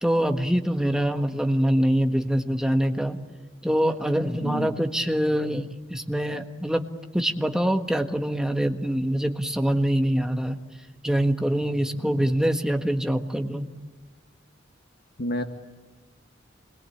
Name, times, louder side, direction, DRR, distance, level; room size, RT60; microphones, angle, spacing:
voice 1, 0.0-3.2 3.6-6.8 7.1-10.6 11.0-13.7, equal, 5° right, 4 dB, 1.5 m, -24 dB
voice 2, 4.4-4.7 12.0-12.2 15.2-15.4, equal, 55° left, 5 dB, 1.7 m, -30 dB
27.0 x 22.0 x 8.6 m, 1.3 s
head